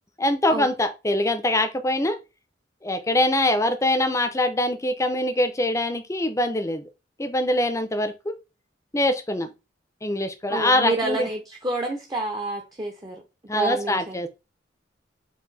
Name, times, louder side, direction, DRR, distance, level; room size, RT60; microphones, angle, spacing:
voice 1, 0.2-2.2 2.8-6.8 7.2-8.3 8.9-9.5 10.0-11.3 13.5-14.3, left 1 dB, 15° left, 0.6 m, -23 dB
voice 2, 10.5-13.2 13.5-14.3, right 2 dB, 20° right, 0.7 m, -29 dB
4.6 x 2.7 x 4.0 m
head